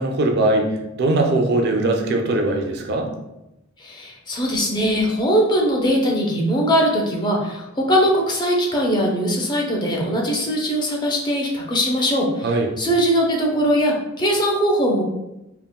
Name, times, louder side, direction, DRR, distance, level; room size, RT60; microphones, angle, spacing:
voice 1, 0.0-3.1 12.4-12.7, right 2 dB, 55° right, 2 dB, 0.4 m, -20 dB
voice 2, 3.8-12.5 12.8-15.0, equal, 20° left, -1 dB, 0.5 m, -20 dB
3.5 x 2.1 x 2.2 m, 0.93 s
head